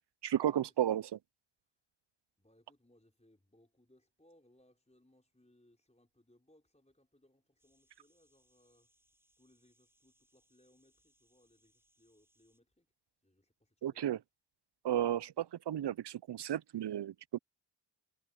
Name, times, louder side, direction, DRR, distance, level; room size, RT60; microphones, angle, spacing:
voice 1, 0.2-1.2 13.8-14.2 14.8-17.4, right 11 dB, 70° right, 0.5 m, -33 dB
voice 2, 2.4-8.9 9.4-12.9 13.2-14.1, left 1 dB, 15° left, 4.8 m, -69 dB
sound 1, 7.6-12.6, equal, 5° right, 7.5 m, -75 dB
wide cardioid pair, 45°, 44 cm